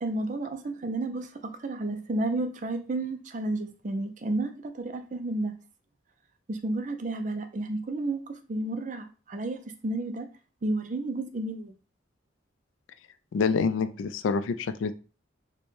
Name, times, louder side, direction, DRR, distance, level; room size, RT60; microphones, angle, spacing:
voice 1, 0.0-5.5 6.5-10.3 10.6-11.7, right 2 dB, 40° right, 0.4 m, -31 dB
voice 2, 13.3-14.9, left 5 dB, 85° left, 0.3 m, -27 dB
4.3 x 2.1 x 3.1 m
head